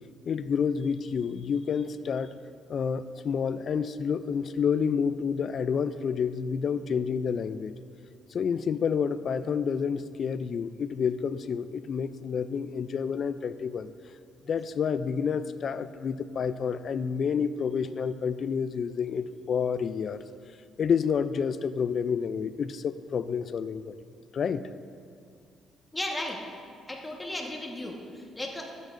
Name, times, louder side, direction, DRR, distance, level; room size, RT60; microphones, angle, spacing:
voice 1, 0.3-2.3 2.7-7.7 8.3-13.9 14.4-20.2 20.8-23.9 24.3-24.7, left 6 dB, 50° left, 13 dB, 0.3 m, -29 dB
voice 2, 25.9-26.4 26.9-28.7, left 1 dB, 10° left, 0 dB, 1.3 m, -35 dB
13.0 x 8.4 x 2.6 m, 2.3 s
cardioid pair, 100°, 0 cm